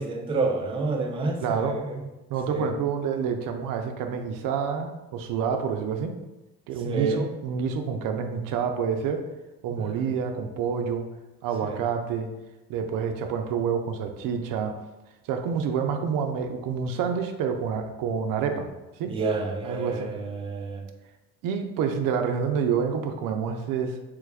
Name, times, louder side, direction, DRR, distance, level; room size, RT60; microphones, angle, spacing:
voice 1, 0.0-2.0 2.5-2.7 6.8-7.3 9.8-10.1 11.6-11.8 19.1-20.8, right 3 dB, 15° right, 1 dB, 0.4 m, -29 dB
voice 2, 1.4-1.8 2.3-6.1 6.7-9.3 9.6-11.1 11.4-12.3 12.7-14.7 15.3-18.7 19.0-19.1 19.6-20.1 21.4-24.0, right 6 dB, 75° right, 6 dB, 0.5 m, -28 dB
3.2 x 2.3 x 3.3 m, 1.0 s
cardioid pair, 115°, 34 cm